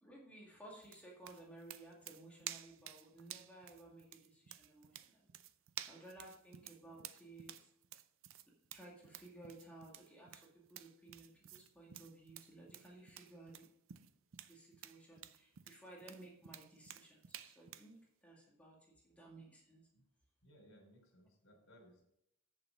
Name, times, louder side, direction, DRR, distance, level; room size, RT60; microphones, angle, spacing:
voice 1, 0.0-5.2 5.8-7.7 8.7-13.7 14.5-19.9, right 2 dB, 5° left, -3 dB, 2.0 m, -57 dB
sound 1, 0.8-17.9, right 11 dB, 65° right, 0.5 m, -53 dB
voice 2, 20.4-22.0, equal, 75° left, 2 dB, 3.3 m, -63 dB
8.3 x 7.0 x 5.1 m, 0.77 s
head